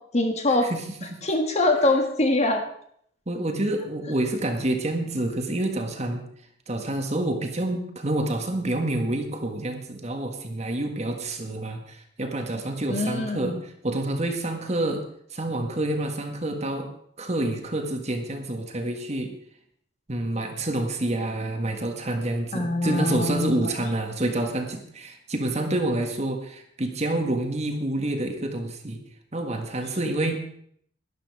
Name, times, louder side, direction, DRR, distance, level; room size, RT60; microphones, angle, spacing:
voice 1, 0.1-0.7 1.2-2.7 12.9-13.6 22.5-23.7, left 2 dB, 35° left, 4 dB, 1.7 m, -23 dB
voice 2, 3.3-6.3 6.7-15.0 15.3-16.9 17.2-19.3 20.1-29.0 29.3-30.4, right 1 dB, 35° right, 4 dB, 1.7 m, -28 dB
12.0 x 11.5 x 4.8 m, 0.65 s
head